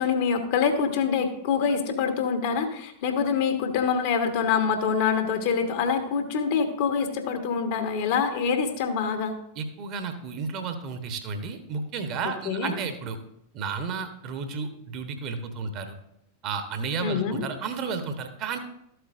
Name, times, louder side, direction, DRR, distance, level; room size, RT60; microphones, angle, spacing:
voice 1, 0.0-9.4 12.2-12.8 17.0-17.5, left 6 dB, 50° left, 6 dB, 1.2 m, -25 dB
voice 2, 9.6-13.2 13.5-16.0 16.4-18.6, right 5 dB, 40° right, 8 dB, 1.0 m, -32 dB
13.0 x 7.8 x 2.6 m, 0.78 s
figure-of-eight pair, 90°, 0 cm